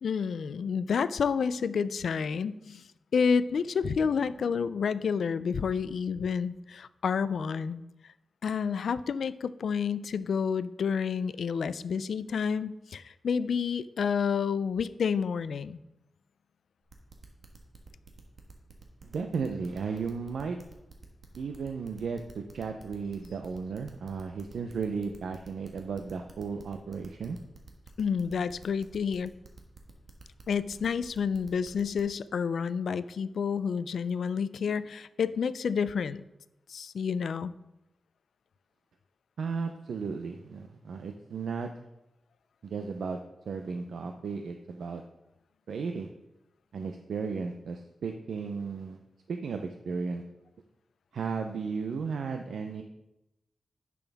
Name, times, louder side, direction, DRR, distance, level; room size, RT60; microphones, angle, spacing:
voice 1, 0.0-2.8 3.1-7.8 8.4-15.8 28.0-29.3 30.5-36.2 36.7-37.5, left 6 dB, 80° left, 15 dB, 0.3 m, -29 dB
sound 1, 16.9-32.0, right 4 dB, 55° right, 1.3 m, -51 dB
voice 2, 19.0-20.6 21.4-27.4 34.7-34.8 39.4-41.7 42.6-43.2 43.5-45.0 45.7-46.1 46.7-49.0 49.3-50.2 51.1-52.8, right 5 dB, 85° right, 5 dB, 0.5 m, -34 dB
10.5 x 6.1 x 3.5 m, 0.91 s
wide cardioid pair, 120°, 0 cm